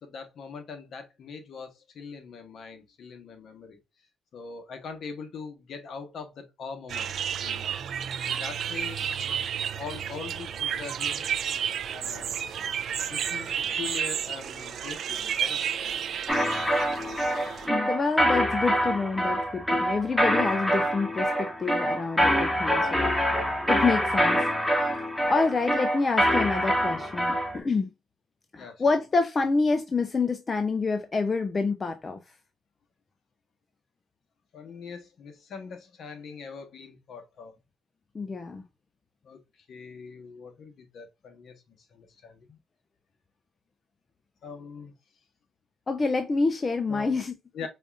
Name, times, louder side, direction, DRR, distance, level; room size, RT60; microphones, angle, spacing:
voice 1, 0.0-3.8 4.3-7.1 7.4-7.8 8.3-9.3 9.7-11.2 11.9-12.5 13.1-15.9 28.6-28.8 34.5-37.5 39.2-39.4 39.7-42.6 44.4-44.9 46.9-47.1 47.5-47.7, left 5 dB, 65° left, 1.1 m, -42 dB
sound 1, 6.9-17.7, right 8 dB, 65° right, 0.4 m, -31 dB
sound 2, 16.3-27.6, equal, 5° left, 1.1 m, -25 dB
voice 2, 17.6-23.3 23.7-24.4 25.3-27.9 28.5-32.2 38.1-38.6 45.9-47.4, left 4 dB, 30° left, 0.5 m, -27 dB
5.1 x 2.5 x 2.4 m
cardioid pair, 90°, 0 cm